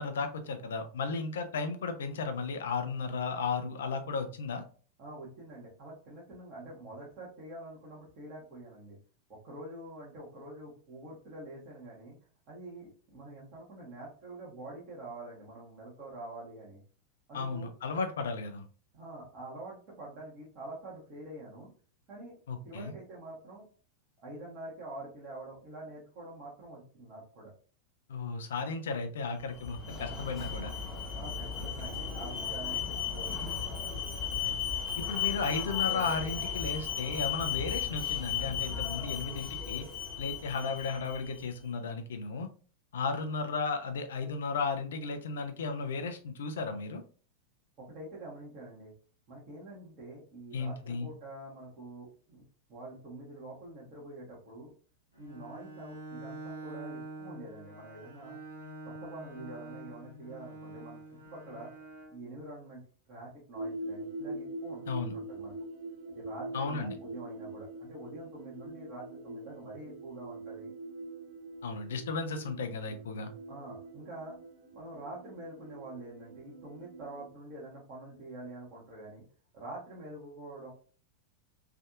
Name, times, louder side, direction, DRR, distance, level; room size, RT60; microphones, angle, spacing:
voice 1, 0.0-4.6 17.3-18.6 22.5-22.9 28.1-30.7 34.3-34.5 35.0-39.9 40.2-42.5 42.9-47.0 50.5-51.1 64.9-65.2 66.5-66.9 71.6-73.3, left 4 dB, 60° left, 7 dB, 0.5 m, -34 dB
voice 2, 5.0-9.0 9.3-12.2 12.5-16.8 17.3-17.7 18.9-21.7 22.1-22.4 22.6-23.6 24.2-27.5 31.1-33.6 47.8-48.9 49.3-52.4 52.7-54.7 55.2-58.4 58.8-61.0 61.3-61.7 62.1-62.8 63.1-64.9 65.1-65.5 66.1-70.7 73.5-74.4 74.7-79.2 79.5-80.7, right 2 dB, 35° right, -6 dB, 1.2 m, -46 dB
Alarm, 29.4-41.5, left 8 dB, 15° left, 1.1 m, -35 dB
Bowed string instrument, 55.1-62.2, right 2 dB, 90° right, 1.2 m, -46 dB
sound 1, 63.5-77.3, right 2 dB, 50° right, 0.5 m, -44 dB
3.3 x 2.6 x 2.4 m, 0.40 s
figure-of-eight pair, 90°, 0 cm